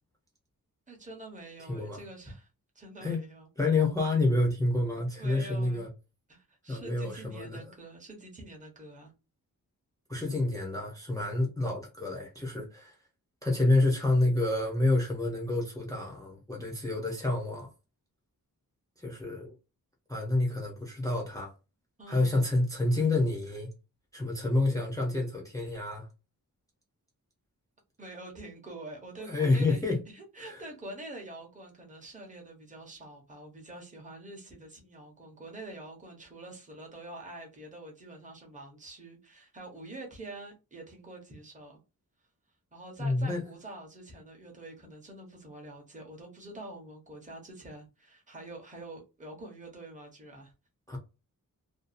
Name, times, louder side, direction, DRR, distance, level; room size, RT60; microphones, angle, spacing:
voice 1, 0.9-2.5 2.7-3.5 5.2-5.8 6.3-9.1 22.0-22.4 28.0-41.8 42.7-50.5, right 1 dB, 20° right, 0.9 m, -46 dB
voice 2, 1.7-2.0 3.0-3.2 3.6-5.9 6.7-7.6 10.1-12.9 13.4-17.7 19.0-19.5 20.1-21.5 22.1-23.7 24.1-26.1 29.2-30.0 30.4-30.6 43.0-43.4 50.9-51.0, left 2 dB, 10° left, 0.6 m, -28 dB
2.6 x 2.3 x 2.4 m
wide cardioid pair, 135°, 35 cm